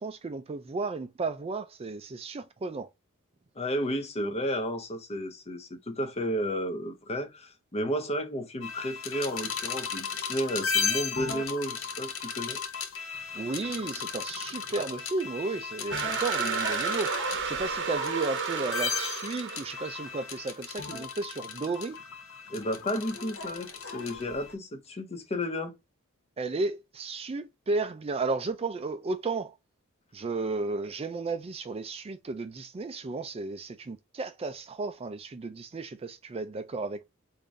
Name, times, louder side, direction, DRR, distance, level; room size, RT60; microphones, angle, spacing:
voice 1, 0.0-2.9 13.3-22.0 26.4-29.5 30.1-37.1, right 3 dB, 25° right, 0.4 m, -33 dB
voice 2, 3.6-12.6 22.5-25.8, equal, 30° left, 0.7 m, -32 dB
sound 1, 8.6-24.5, left 5 dB, 65° left, 0.7 m, -35 dB
sound 2, 15.9-20.3, right 6 dB, 60° right, 0.8 m, -32 dB
3.7 x 2.6 x 3.2 m
head